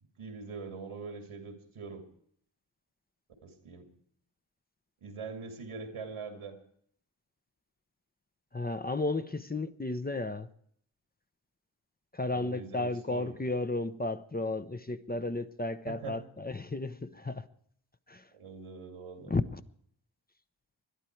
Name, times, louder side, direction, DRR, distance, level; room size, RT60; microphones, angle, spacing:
voice 1, 0.0-2.0 3.4-3.9 5.0-6.6 12.3-13.4 15.9-16.2 18.3-19.3, right 4 dB, 90° right, 2.3 m, -43 dB
voice 2, 8.5-10.5 12.1-17.5 18.1-18.2 19.3-19.6, left 2 dB, 20° left, 0.7 m, -33 dB
21.0 x 11.0 x 4.6 m
cardioid pair, 40°, 49 cm